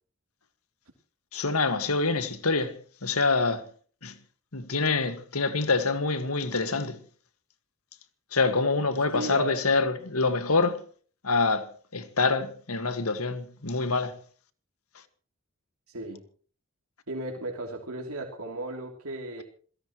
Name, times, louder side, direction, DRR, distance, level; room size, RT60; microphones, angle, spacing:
voice 1, 1.3-2.8 3.0-3.6 4.0-4.1 4.5-7.0 8.3-10.8 11.2-14.1, left 3 dB, 85° left, 1.9 m, -26 dB
voice 2, 9.1-9.6 15.9-16.2 17.1-19.4, right 2 dB, 80° right, 3.1 m, -35 dB
27.5 x 17.0 x 3.1 m
head